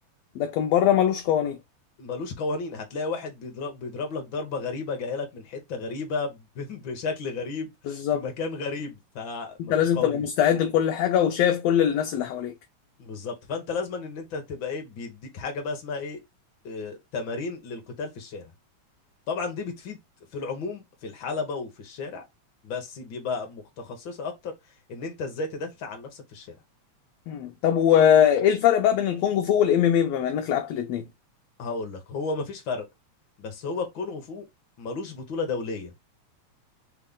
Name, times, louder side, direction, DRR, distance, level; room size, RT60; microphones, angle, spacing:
voice 1, 0.4-1.6 7.9-8.2 9.6-12.5 27.3-31.0, left 9 dB, 75° left, 1.6 m, -22 dB
voice 2, 2.0-10.3 13.0-16.2 16.6-18.5 19.3-20.0 20.3-22.2 22.6-24.5 24.9-26.5 31.6-32.9 33.4-34.5 34.8-35.9, left 4 dB, 55° left, 1.6 m, -33 dB
4.3 x 3.3 x 3.6 m
omnidirectional pair, 3.3 m